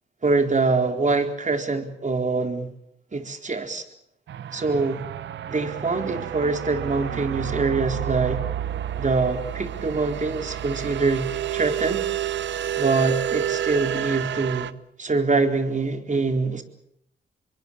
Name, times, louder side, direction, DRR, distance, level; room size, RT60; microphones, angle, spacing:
voice 1, 0.2-2.7 3.1-3.8 4.5-5.0 5.5-8.4 9.0-11.3 11.5-12.0 12.8-14.7 15.0-16.6, right 3 dB, 40° right, 4.1 m, -24 dB
sound 1, 4.3-14.7, right 11 dB, 80° right, 0.9 m, -29 dB
26.0 x 22.5 x 7.2 m
cardioid pair, 55°, 19 cm